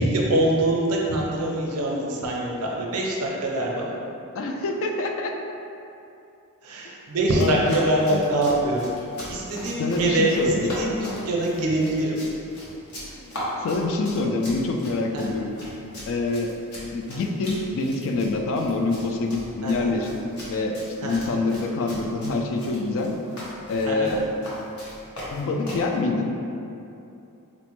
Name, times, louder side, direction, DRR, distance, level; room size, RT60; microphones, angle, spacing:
voice 1, 0.0-3.9 6.6-8.8 9.3-12.2 15.1-15.2 19.6-19.9 21.0-21.2 23.9-24.1, right 1 dB, 75° right, -2 dB, 0.6 m, -24 dB
voice 2, 4.3-5.4 7.4-7.6 8.1-8.3 9.8-10.8 13.0-15.5 16.1-16.5 16.9-23.1 23.7-24.2 25.3-26.3, left 3 dB, 60° left, 2 dB, 0.3 m, -26 dB
Run, 7.3-25.9, equal, 85° left, 0.9 m, -39 dB
4.1 x 2.1 x 3.0 m, 2.7 s
head